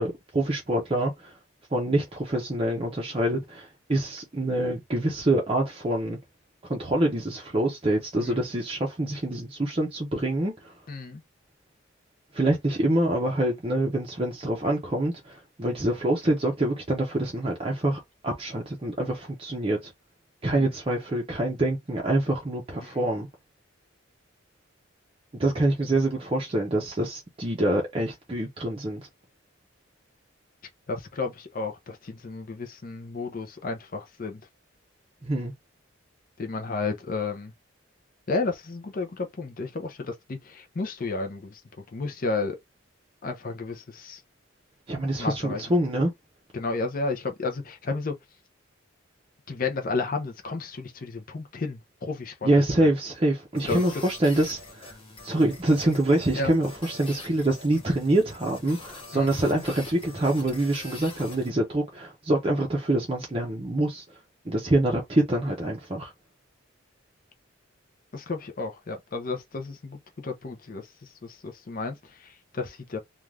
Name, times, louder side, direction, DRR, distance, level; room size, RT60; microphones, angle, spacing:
voice 1, 0.0-1.3 1.7-6.2 6.7-10.7 12.3-19.9 20.4-23.3 25.3-29.0 35.2-35.5 44.9-46.1 52.4-54.9 55.2-64.0 64.5-66.1, right 1 dB, 25° right, 0.5 m, -25 dB
voice 2, 10.9-11.2 20.5-20.7 22.8-23.1 30.9-34.4 36.4-37.5 38.3-41.6 41.9-42.6 43.2-44.2 45.2-45.6 46.5-48.1 49.5-52.3 52.8-52.9 53.7-53.8 56.3-56.5 59.1-59.3 68.1-70.9 71.2-73.0, left 3 dB, 45° left, 0.5 m, -32 dB
sound 1, 53.5-61.5, left 2 dB, 25° left, 1.0 m, -45 dB
2.4 x 2.2 x 3.2 m
head